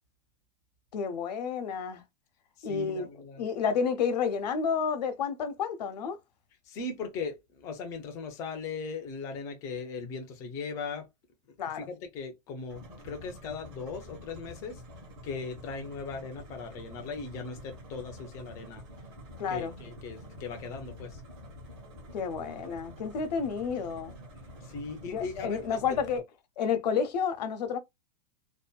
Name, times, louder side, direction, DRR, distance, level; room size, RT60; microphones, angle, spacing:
voice 1, 0.9-2.0 2.6-3.1 3.4-6.2 11.6-11.9 19.4-19.7 22.1-24.2 25.1-26.2 26.6-27.8, left 6 dB, 90° left, 0.7 m, -30 dB
voice 2, 2.6-3.4 6.7-11.1 11.7-14.8 15.2-18.8 19.5-21.2 24.6-25.8, left 4 dB, 15° left, 0.3 m, -38 dB
sound 1, 12.7-26.2, equal, 35° right, 0.9 m, -48 dB
2.6 x 2.1 x 2.3 m
supercardioid pair, 175°, 21 cm